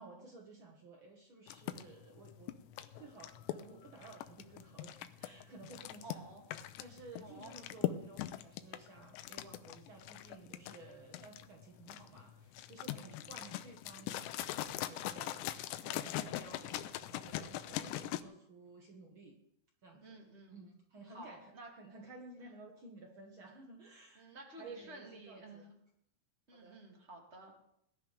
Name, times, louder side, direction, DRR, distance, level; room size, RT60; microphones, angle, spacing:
voice 1, 0.0-2.5 3.0-6.2 6.8-19.4 19.8-20.2 20.5-24.3 24.6-25.7 26.5-26.8, right 3 dB, 75° right, 0 dB, 1.2 m, -54 dB
sound 1, 1.5-18.2, left 13 dB, 90° left, 2.9 m, -41 dB
voice 2, 6.0-6.4 7.2-7.5 12.9-13.2 14.7-15.3 20.0-20.6 21.1-21.7 24.1-25.6 26.5-27.5, right 2 dB, 20° right, 0 dB, 1.9 m, -53 dB
21.0 x 11.5 x 3.4 m, 0.75 s
omnidirectional pair, 4.9 m